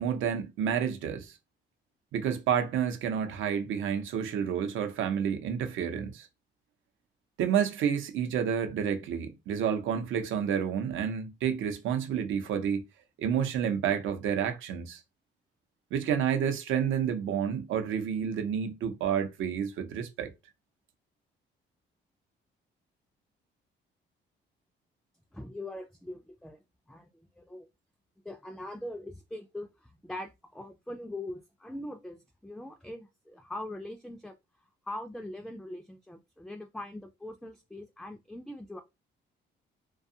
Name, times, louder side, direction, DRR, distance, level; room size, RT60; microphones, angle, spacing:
voice 1, 0.0-1.4 2.1-6.3 7.4-12.9 13.2-15.0 15.9-20.3, right 8 dB, 80° right, 0.6 m, -29 dB
voice 2, 25.3-26.6 26.9-27.1 27.4-27.7 28.2-34.4 34.8-38.8, left 1 dB, ahead, 0.3 m, -42 dB
2.5 x 2.3 x 2.7 m
cardioid pair, 90°, 20 cm